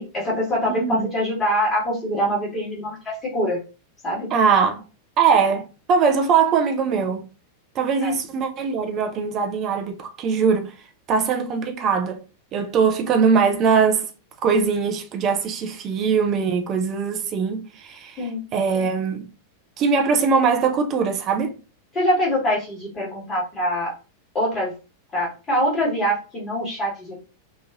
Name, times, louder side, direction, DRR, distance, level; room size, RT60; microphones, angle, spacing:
voice 1, 0.0-3.6 4.0-4.3 8.0-8.1 18.2-18.4 21.9-23.9 24.3-24.7 25.1-27.4, equal, 20° left, 1.5 m, -24 dB
voice 2, 0.7-1.1 4.3-4.8 5.2-7.3 7.7-10.7 11.1-12.2 12.5-14.1 14.4-19.3 19.8-21.6, right 5 dB, 35° right, 0.5 m, -21 dB
3.0 x 2.3 x 2.4 m
figure-of-eight pair, 90°, 0 cm